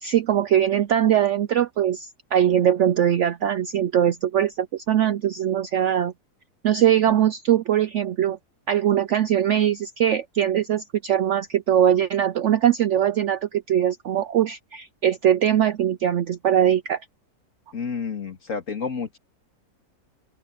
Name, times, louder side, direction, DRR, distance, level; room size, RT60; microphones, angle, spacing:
voice 1, 0.0-6.1 6.6-8.4 8.7-17.0, right 10 dB, 65° right, 0.7 m, -21 dB
voice 2, 17.7-19.2, left 5 dB, 55° left, 2.6 m, -30 dB
open air
omnidirectional pair, 1.7 m